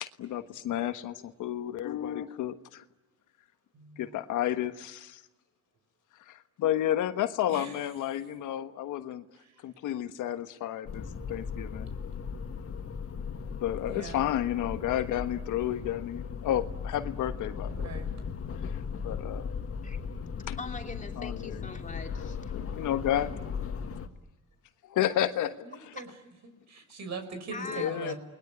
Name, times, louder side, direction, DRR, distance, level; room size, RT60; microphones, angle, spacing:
voice 1, 0.0-2.8 4.0-5.2 6.3-9.2 9.6-11.9 13.4-17.9 18.7-18.8 19.0-19.5 20.5-20.6 21.2-21.7 22.5-23.3 24.8-25.5 27.6-28.1, left 12 dB, 85° left, 10 dB, 1.4 m, -31 dB
sound 1, 10.9-24.1, left 6 dB, 50° left, 2.0 m, -37 dB
voice 2, 13.9-14.3 17.7-18.1 21.7-21.9 25.6-26.1 26.7-28.2, right 4 dB, 65° right, 8 dB, 6.1 m, -40 dB
voice 3, 20.6-22.4 25.2-25.3 26.0-26.1 27.5-28.1, left 4 dB, 25° left, 3 dB, 3.0 m, -41 dB
29.5 x 20.5 x 9.5 m, 1.1 s
cardioid pair, 90°, 30 cm